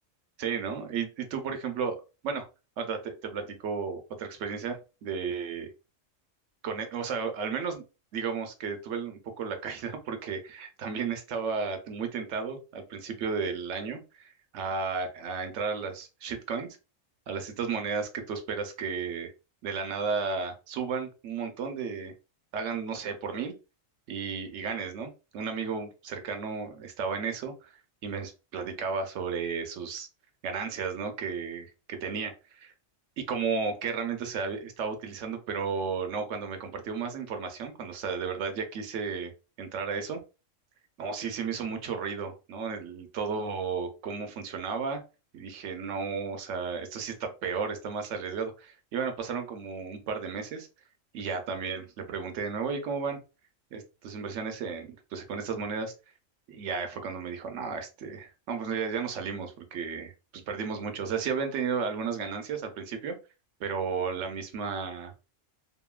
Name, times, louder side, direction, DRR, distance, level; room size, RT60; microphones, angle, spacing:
voice 1, 0.4-2.0 2.2-2.5 2.8-5.7 6.6-7.8 8.1-16.7 17.3-19.3 19.6-22.1 22.5-23.5 24.1-27.7 28.0-30.1 30.4-32.7 33.2-39.3 39.6-40.2 41.0-45.0 45.3-50.7 51.1-53.2 53.7-55.9 56.5-60.1 60.5-63.2 63.6-65.1, right 5 dB, 75° right, 6 dB, 0.9 m, -33 dB
2.8 x 2.6 x 2.3 m, 0.31 s
omnidirectional pair, 1.3 m